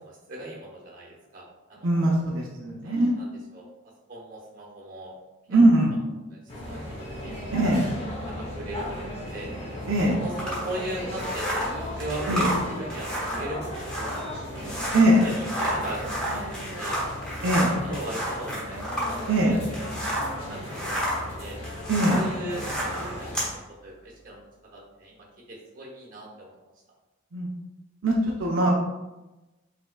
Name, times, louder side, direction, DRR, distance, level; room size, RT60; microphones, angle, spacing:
voice 1, 0.0-2.2 2.8-3.7 4.1-5.1 5.5-5.6 6.3-7.6 8.2-9.5 10.2-16.5 16.8-17.0 17.5-19.9 20.3-21.6 22.1-23.4 23.7-26.5, right 1 dB, 45° right, -3 dB, 1.2 m, -39 dB
voice 2, 1.8-3.1 5.5-5.9 7.5-7.9 9.9-10.2 12.3-12.5 14.9-15.2 17.4-17.7 19.3-19.6 21.9-22.2 27.3-27.5 28.0-28.7, right 1 dB, 75° right, -3 dB, 0.6 m, -21 dB
sound 1, 6.5-23.5, left 1 dB, 30° left, 0.9 m, -36 dB
sound 2, 10.4-20.4 20.7-23.5, equal, 5° left, 1.0 m, -31 dB
5.4 x 3.4 x 2.2 m, 1.0 s
head